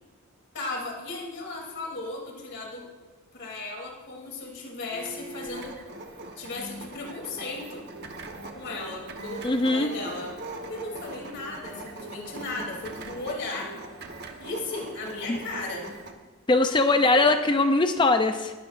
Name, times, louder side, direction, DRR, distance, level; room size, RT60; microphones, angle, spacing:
voice 1, 0.5-2.9 3.3-5.8 6.4-7.8 8.5-10.3 10.7-13.7 14.4-15.9 17.1-17.3, left 2 dB, 55° left, -1 dB, 3.1 m, -36 dB
sound 1, 4.9-16.1, right 2 dB, 50° right, 1.2 m, -41 dB
voice 2, 9.4-9.9 15.3-15.4 16.5-18.5, left 2 dB, 20° left, 7 dB, 0.4 m, -21 dB
20.5 x 12.0 x 2.6 m, 1.3 s
head